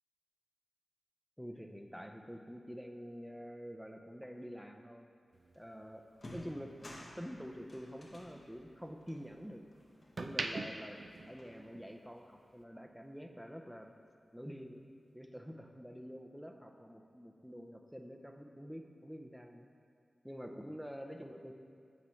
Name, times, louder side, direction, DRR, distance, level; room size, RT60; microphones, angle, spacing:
voice 1, 1.4-5.1 5.5-6.8 7.2-9.6 10.2-14.0 14.3-14.8 15.1-19.7 20.2-21.5, equal, ahead, 4 dB, 0.5 m, -47 dB
sound 1, 5.3-7.7 8.1-9.5 9.9-12.1 12.4-12.6, right 3 dB, 65° right, 0.3 m, -43 dB
sound 2, 5.5-5.7 6.1-10.7 11.0-12.0, left 1 dB, 50° left, 0.9 m, -54 dB
8.1 x 4.3 x 3.2 m, 2.3 s
cardioid pair, 40°, 0 cm